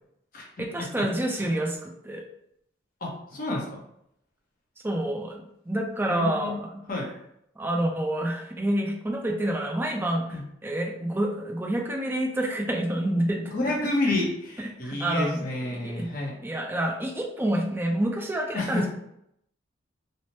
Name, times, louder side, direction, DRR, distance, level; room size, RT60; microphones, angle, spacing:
voice 1, 0.6-2.2 4.8-6.8 7.6-13.7 14.1-14.2 14.6-16.1 16.4-18.9, right 1 dB, 10° right, 0 dB, 0.3 m, -28 dB
voice 2, 3.0-3.8 6.1-6.6 6.9-7.1 10.3-10.4 13.5-16.4 18.5-18.9, left 2 dB, 45° left, -2 dB, 0.8 m, -29 dB
3.1 x 2.0 x 2.9 m, 0.75 s
head